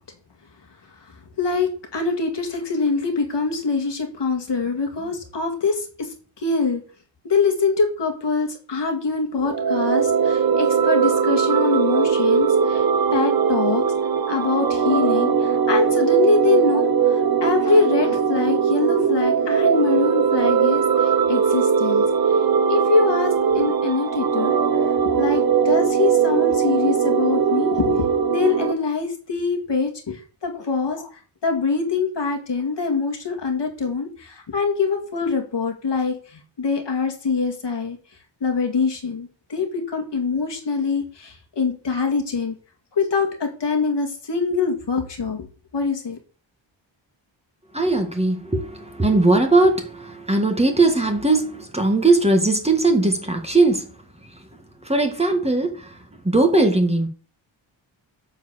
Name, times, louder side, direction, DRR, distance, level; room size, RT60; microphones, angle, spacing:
voice 1, 1.4-6.8 7.2-12.8 13.1-13.9 14.3-22.0 22.7-24.6 25.0-31.1 31.4-38.0 38.4-42.5 43.0-45.5 45.7-46.2, left 4 dB, 60° left, 2.3 m, -24 dB
sound 1, 9.4-28.7, right 6 dB, 50° right, 0.9 m, -20 dB
voice 2, 47.7-53.9 54.8-56.0 56.2-57.1, right 2 dB, 15° right, 1.8 m, -19 dB
9.1 x 4.6 x 7.4 m
wide cardioid pair, 100°, 46 cm